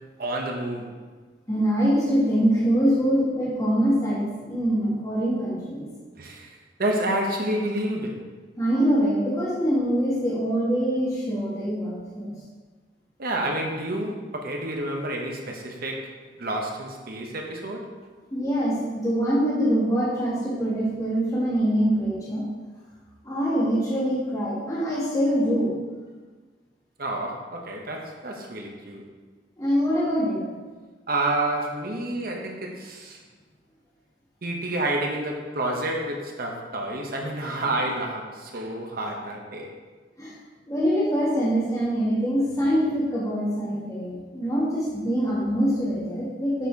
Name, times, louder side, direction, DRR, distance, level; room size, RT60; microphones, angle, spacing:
voice 1, 0.2-0.9 6.2-8.2 13.2-16.1 16.4-17.9 27.0-29.0 31.1-33.2 34.4-39.7, right 1 dB, 55° right, 1 dB, 1.1 m, -29 dB
voice 2, 1.5-5.9 8.6-12.3 18.3-22.4 23.2-25.8 29.6-30.5 40.2-40.3 40.7-46.7, equal, 20° left, -8 dB, 1.9 m, -24 dB
7.9 x 4.4 x 4.6 m, 1.4 s
head